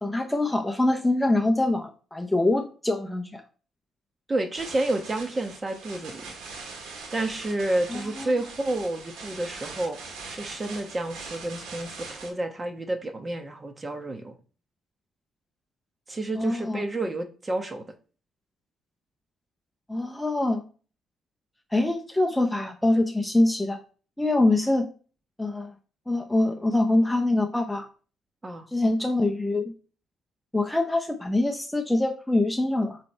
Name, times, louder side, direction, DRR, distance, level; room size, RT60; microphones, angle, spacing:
voice 1, 0.0-3.4 7.9-8.3 16.3-16.8 19.9-20.6 21.7-23.8 24.2-24.9 25.4-25.7 26.1-27.9 28.7-29.7 30.5-33.0, left 2 dB, 5° left, 4 dB, 0.7 m, -24 dB
voice 2, 4.3-6.3 7.1-10.0 10.3-14.4 16.1-17.9 28.4-28.7, right 2 dB, 25° right, 6 dB, 1.1 m, -30 dB
sound 1, 4.6-12.3, right 4 dB, 90° right, 1.7 m, -41 dB
7.5 x 3.3 x 4.3 m, 0.38 s
cardioid pair, 90°, 0 cm